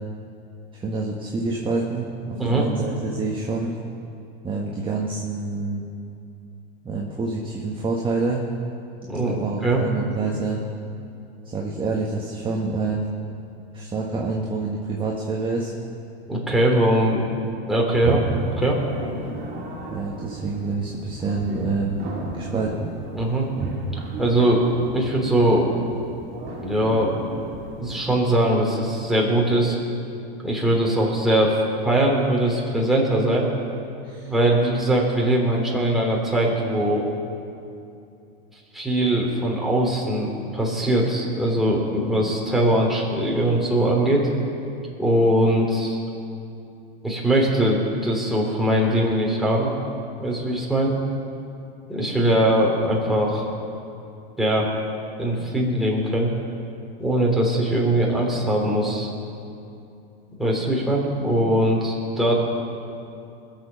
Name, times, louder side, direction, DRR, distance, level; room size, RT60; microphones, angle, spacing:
voice 1, 0.7-3.7 4.4-5.8 6.8-8.4 9.2-10.6 11.4-13.1 13.7-15.7 19.9-22.0 22.3-22.9 34.0-34.3, right 3 dB, 15° right, -2 dB, 1.5 m, -27 dB
voice 2, 9.1-9.8 16.3-17.3 17.7-18.8 23.1-23.5 24.2-24.6 24.9-25.7 26.6-27.1 27.8-29.8 30.4-33.5 34.2-37.1 38.7-44.3 45.0-46.0 47.0-49.7 50.2-50.9 51.9-53.4 54.4-54.7 55.2-56.3 57.0-59.1 60.4-62.3, right 1 dB, ahead, -3 dB, 3.1 m, -21 dB
sound 1, 18.0-28.1, right 2 dB, 35° right, 2.8 m, -34 dB
21.0 x 7.4 x 5.8 m, 2.6 s
hypercardioid pair, 115°, 31 cm